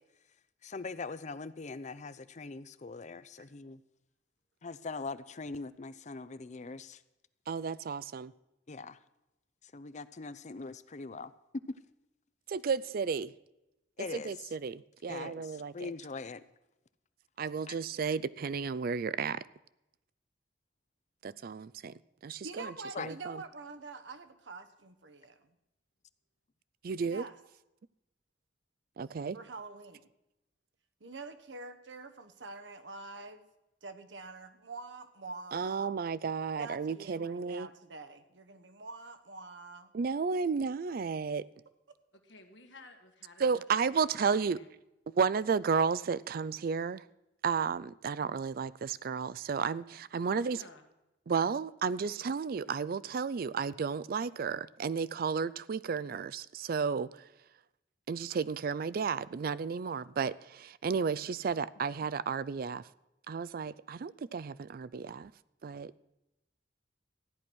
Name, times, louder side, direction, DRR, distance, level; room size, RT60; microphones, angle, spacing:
voice 1, 0.6-3.8 4.6-7.0 8.7-9.0 9.7-11.8 14.0-14.3 15.1-16.4 17.7-17.8 22.9-23.1, left 3 dB, 40° left, 0.6 m, -41 dB
voice 2, 7.5-8.3 12.5-13.3 14.1-15.9 17.4-19.4 21.2-21.9 22.2-22.7 23.0-23.4 26.8-27.2 29.0-29.4 35.5-37.7 39.9-41.4 43.4-44.6 45.1-47.0 47.4-50.6 51.3-57.1 58.1-62.8 63.3-65.3 65.6-65.9, right 5 dB, 55° right, 0.4 m, -33 dB
voice 3, 22.4-25.5 27.1-27.4 29.3-30.1 31.0-33.5 33.8-35.9 36.6-39.9, right 3 dB, 80° right, 1.1 m, -46 dB
voice 4, 42.1-44.7 50.2-50.9, left 3 dB, 75° left, 1.8 m, -55 dB
14.0 x 10.0 x 6.2 m
head